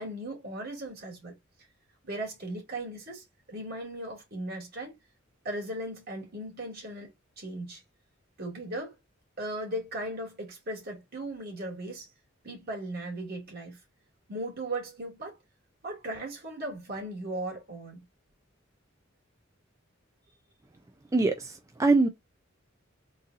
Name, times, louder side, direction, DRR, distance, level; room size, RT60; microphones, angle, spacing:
voice 1, 0.0-1.3 2.0-5.0 5.4-7.8 8.4-9.0 9.4-12.1 12.4-13.8 14.3-15.4 15.8-18.0, right 1 dB, 50° right, 2.3 m, -37 dB
voice 2, 21.1-21.5 21.8-22.1, right 3 dB, 15° right, 0.4 m, -22 dB
3.9 x 2.6 x 3.9 m
head